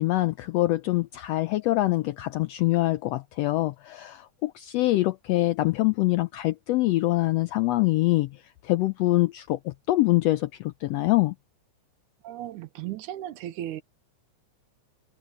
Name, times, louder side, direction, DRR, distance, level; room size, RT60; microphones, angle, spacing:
voice 1, 0.0-11.3, left 18 dB, 85° left, 1.5 m, -24 dB
voice 2, 12.2-13.8, right 13 dB, 85° right, 2.3 m, -35 dB
omnidirectional pair, 3.5 m